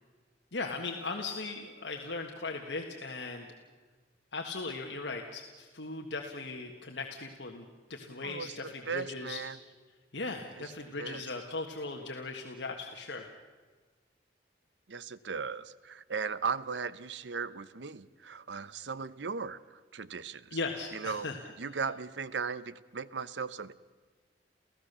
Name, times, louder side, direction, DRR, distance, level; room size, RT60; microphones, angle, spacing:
voice 1, 0.5-3.5 4.3-9.4 10.1-13.3 20.5-21.4 21.7-21.8, left 3 dB, 70° left, 2 dB, 1.6 m, -38 dB
voice 2, 8.2-8.5 8.9-9.6 10.6-10.7 11.0-11.2 14.9-20.6 20.9-21.3 21.6-23.7, right 5 dB, 80° right, 17 dB, 0.8 m, -37 dB
29.5 x 15.5 x 6.8 m, 1.4 s
head